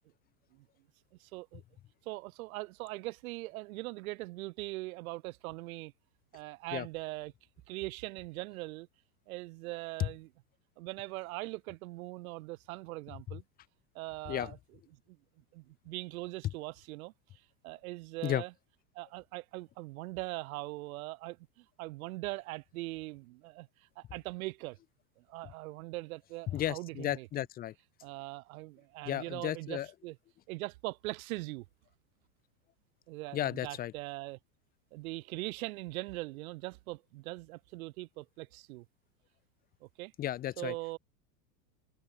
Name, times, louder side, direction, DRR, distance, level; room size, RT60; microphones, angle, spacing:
voice 1, 1.2-1.6 2.1-5.9 6.3-7.3 7.7-8.9 9.3-10.3 10.8-13.4 13.9-14.6 15.1-15.2 15.5-17.1 17.6-18.5 18.9-24.8 25.2-27.3 28.0-30.2 30.5-31.6 33.1-34.4 34.9-38.9 39.8-40.1 40.6-41.0, right 21 dB, 55° right, 0.9 m, -41 dB
voice 2, 26.5-27.7 29.1-29.9 33.3-33.9 40.2-40.7, left 12 dB, 20° left, 0.7 m, -33 dB
supercardioid pair, 145°, 50 cm